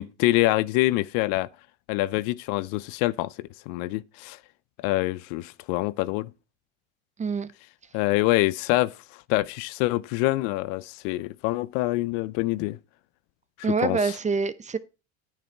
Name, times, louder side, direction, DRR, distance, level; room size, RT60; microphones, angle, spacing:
voice 1, 0.0-1.5 1.9-4.4 4.8-6.3 7.9-8.9 9.3-12.8 13.8-14.1, left 19 dB, 70° left, 0.6 m, -25 dB
voice 2, 7.2-7.5 13.6-14.8, right 5 dB, 20° right, 0.7 m, -26 dB
9.3 x 6.8 x 4.4 m
supercardioid pair, 95°, 35 cm